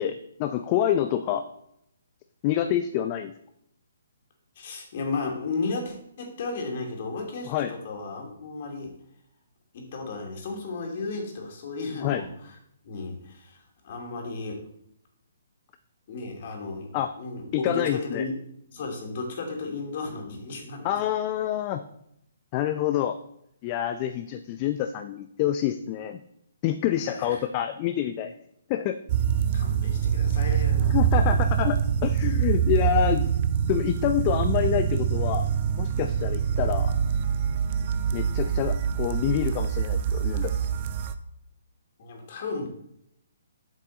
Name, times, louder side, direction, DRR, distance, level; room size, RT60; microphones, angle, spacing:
voice 1, 0.0-1.4 2.4-3.3 7.5-7.7 12.0-12.2 16.9-17.1 17.5-18.3 20.8-21.8 22.5-23.2 23.6-26.2 26.6-28.3 28.7-29.0 30.8-33.3 33.7-35.4 35.8-37.0 38.1-40.5, left 11 dB, 30° left, 9 dB, 0.5 m, -27 dB
voice 2, 4.6-8.9 9.7-12.6 12.8-14.6 16.1-16.9 17.2-18.4 18.7-21.0 26.9-27.4 29.5-31.0 42.0-42.7, left 3 dB, 50° left, 2 dB, 2.5 m, -34 dB
sound 1, 29.1-41.2, right 8 dB, 40° right, 0.6 m, -25 dB
7.6 x 7.4 x 4.1 m, 0.75 s
figure-of-eight pair, 140°, 0 cm